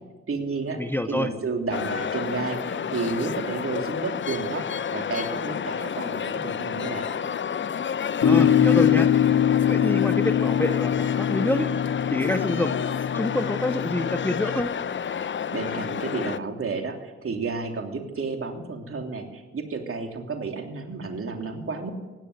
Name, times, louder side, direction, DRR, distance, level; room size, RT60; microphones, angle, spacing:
voice 1, 0.3-0.8 1.1-7.1 15.5-21.9, right 4 dB, 45° right, 3 dB, 3.2 m, -31 dB
voice 2, 0.8-1.3 8.2-9.1 9.7-11.7 12.1-12.7 13.1-14.7, left 1 dB, 5° left, 10 dB, 0.9 m, -26 dB
sound 1, 1.7-16.4, left 7 dB, 40° left, 0.8 m, -30 dB
sound 2, 8.2-14.6, left 9 dB, 60° left, 1.8 m, -23 dB
16.5 x 10.5 x 8.1 m, 1.3 s
hypercardioid pair, 50°, 30 cm